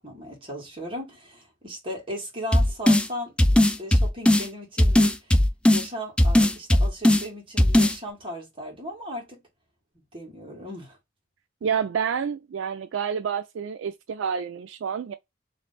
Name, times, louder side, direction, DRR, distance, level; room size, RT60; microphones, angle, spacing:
voice 1, 0.0-5.1 5.7-9.4 10.1-11.0, equal, 30° right, 1.7 m, -37 dB
sound 1, 2.5-3.1 3.4-4.5 4.8-5.8 6.2-7.2 7.6-7.9, left 1 dB, 5° left, 0.3 m, -18 dB
voice 2, 11.6-15.1, right 7 dB, 75° right, 0.3 m, -28 dB
3.2 x 2.5 x 4.0 m
head